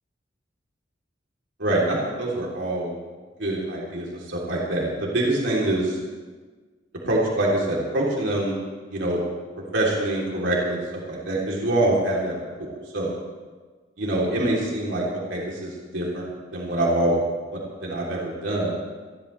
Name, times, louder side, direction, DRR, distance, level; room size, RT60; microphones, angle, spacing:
voice 1, 1.6-2.9 3.4-6.0 7.0-8.6 8.9-9.2 9.7-10.8 11.1-13.1 14.0-15.0 15.3-16.2 16.5-17.2 17.5-18.7, right 1 dB, 75° right, -4 dB, 3.5 m, -25 dB
26.5 x 12.0 x 3.4 m, 1.4 s
head